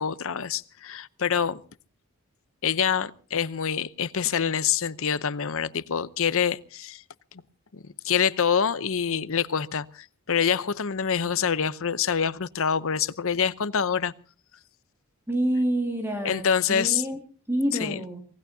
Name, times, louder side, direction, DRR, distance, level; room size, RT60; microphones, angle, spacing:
voice 1, 0.0-1.6 2.6-7.0 7.7-14.1 16.2-17.0 17.8-18.0, left 7 dB, 65° left, 0.7 m, -26 dB
voice 2, 15.3-17.2 17.5-18.2, right 1 dB, 10° right, 2.0 m, -27 dB
25.0 x 19.5 x 2.7 m
head